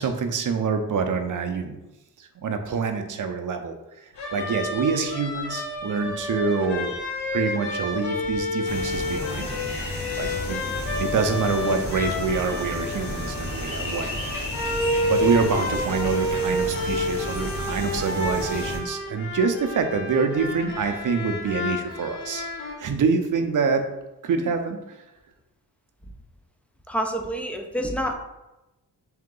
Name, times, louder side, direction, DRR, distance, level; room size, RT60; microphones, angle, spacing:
voice 1, 0.0-1.8 2.2-4.0 4.3-6.9 7.3-10.6 11.0-14.4 15.0-22.5 22.8-23.8 24.2-24.8, right 5 dB, 50° right, 6 dB, 0.5 m, -26 dB
sound 1, 4.2-22.7, left 1 dB, 80° left, 0.8 m, -30 dB
sound 2, 8.6-18.8, left 2 dB, 55° left, 1.3 m, -32 dB
voice 2, 26.9-28.1, equal, 5° left, 3 dB, 0.4 m, -28 dB
3.7 x 2.8 x 3.8 m, 0.98 s
wide cardioid pair, 105°, 40 cm